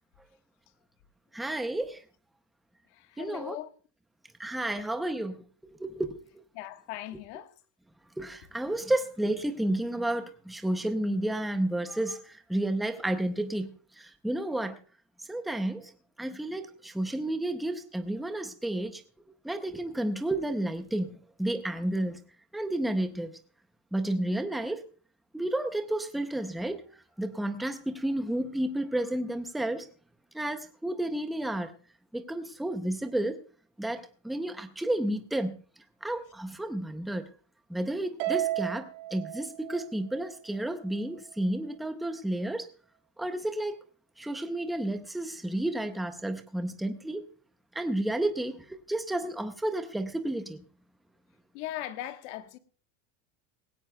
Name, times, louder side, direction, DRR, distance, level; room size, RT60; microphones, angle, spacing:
voice 1, 1.3-2.0 3.2-3.6 4.4-6.2 8.2-13.7 14.0-14.8 15.3-15.9 16.2-19.0 19.4-22.2 22.5-23.3 23.9-24.8 25.3-26.8 27.2-29.9 30.3-31.7 32.1-33.4 33.8-35.6 36.0-37.3 37.7-42.7 43.2-43.8 44.2-47.3 47.7-50.6, right 1 dB, ahead, 0.5 m, -31 dB
voice 2, 2.9-3.7 4.7-4.9 6.5-7.5 51.5-52.6, left 13 dB, 70° left, 1.4 m, -39 dB
Harp, 38.2-40.7, right 15 dB, 75° right, 2.9 m, -33 dB
18.5 x 16.5 x 2.2 m
cardioid pair, 165°, 36 cm